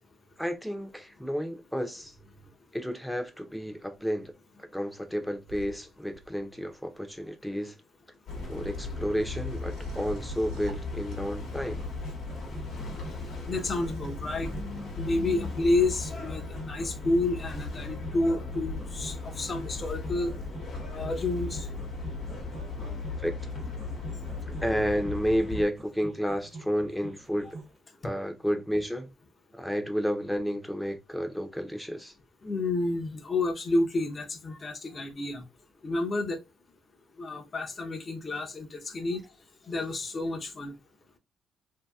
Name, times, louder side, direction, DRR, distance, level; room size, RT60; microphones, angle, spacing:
voice 1, 0.4-2.1 2.7-4.3 4.7-7.7 8.4-11.8 23.2-23.3 24.5-27.5 28.0-29.1 29.5-32.1, equal, 5° left, 0.6 m, -31 dB
sound 1, 5.5-6.5 8.4-11.5 13.6-14.6, right 2 dB, 85° right, 0.5 m, -46 dB
sound 2, 8.3-25.7, left 3 dB, 70° left, 1.1 m, -37 dB
sound 3, 11.8-27.7, right 3 dB, 30° right, 0.8 m, -46 dB
voice 2, 13.5-20.3 20.9-21.7 32.4-35.4 35.8-36.4 37.2-39.2 39.7-40.7, left 2 dB, 35° left, 0.7 m, -30 dB
2.7 x 2.7 x 2.3 m
cardioid pair, 90°, 0 cm